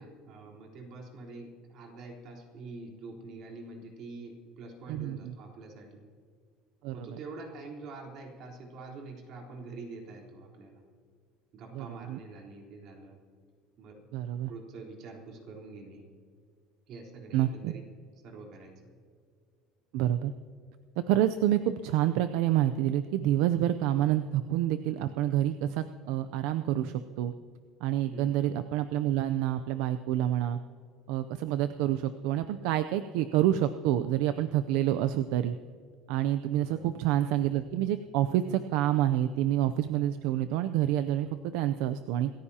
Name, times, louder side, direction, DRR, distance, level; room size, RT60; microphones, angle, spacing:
voice 1, 0.0-6.0 6.9-10.8 11.5-13.2 13.8-14.1 14.4-16.1 16.9-17.8 18.2-18.9 28.0-28.4 36.6-36.9, right 3 dB, 50° right, -1 dB, 3.7 m, -45 dB
voice 2, 4.9-5.3 6.8-7.1 11.7-12.2 14.1-14.5 17.3-17.7 19.9-20.3 21.0-27.3 27.8-30.6 31.1-35.6 36.1-42.3, right 12 dB, 70° right, 10 dB, 0.5 m, -28 dB
27.0 x 14.5 x 2.9 m, 2.2 s
cardioid pair, 155°, 0 cm